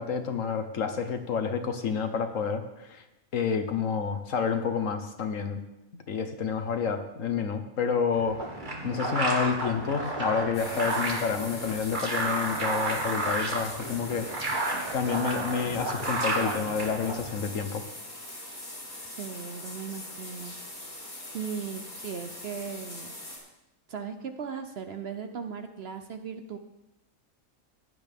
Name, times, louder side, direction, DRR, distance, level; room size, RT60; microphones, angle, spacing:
voice 1, 0.0-3.0 3.3-5.6 6.1-8.4 8.8-14.3 14.9-17.8, left 6 dB, 65° left, 7 dB, 1.4 m, -29 dB
sound 1, 8.1-17.4, right 2 dB, 35° right, 1.9 m, -31 dB
sound 2, 10.5-23.4, left 1 dB, 85° left, 5.0 m, -42 dB
voice 2, 19.0-20.5 21.3-23.1 23.9-26.6, right 6 dB, 55° right, 7 dB, 0.9 m, -37 dB
15.5 x 10.5 x 3.6 m, 0.94 s
omnidirectional pair, 1.5 m